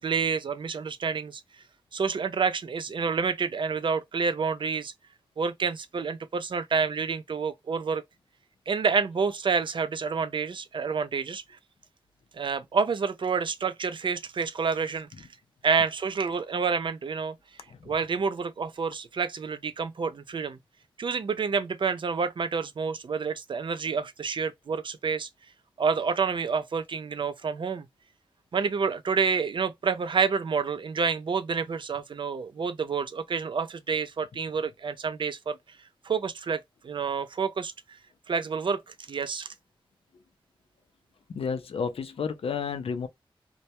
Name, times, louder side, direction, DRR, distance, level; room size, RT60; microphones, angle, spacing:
voice 1, 0.0-1.4 1.9-4.9 5.4-8.0 8.7-11.4 12.3-15.3 15.6-17.4 17.9-20.6 21.0-25.3 25.8-27.9 28.5-35.6 36.0-37.7 38.3-39.5, right 5 dB, 60° right, 0.4 m, -28 dB
voice 2, 41.3-43.1, left 6 dB, 85° left, 0.4 m, -31 dB
2.1 x 2.1 x 2.7 m
wide cardioid pair, 95°, 10 cm